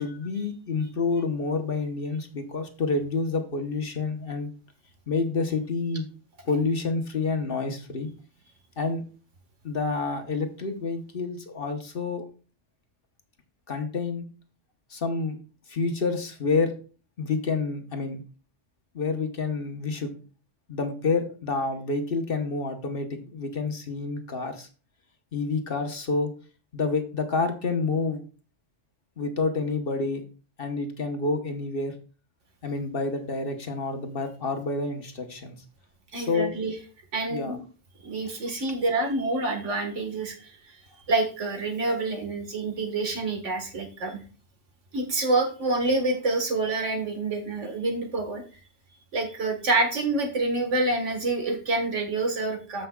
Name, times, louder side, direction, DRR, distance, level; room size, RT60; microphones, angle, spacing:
voice 1, 0.0-4.5 5.1-6.1 6.5-8.1 8.8-9.0 9.6-12.2 13.7-14.2 14.9-15.4 15.7-16.7 17.2-18.2 18.9-20.2 20.7-24.7 25.3-26.3 26.7-28.2 29.2-30.2 30.6-31.9 32.6-35.6 36.1-36.5 37.3-37.6, left 4 dB, 50° left, 4 dB, 1.2 m, -28 dB
voice 2, 36.1-36.7 37.1-37.6 38.0-40.6 41.1-44.2 44.9-48.4 49.1-52.9, right 2 dB, 75° right, 4 dB, 1.9 m, -27 dB
14.0 x 5.5 x 2.3 m, 0.36 s
omnidirectional pair, 1.3 m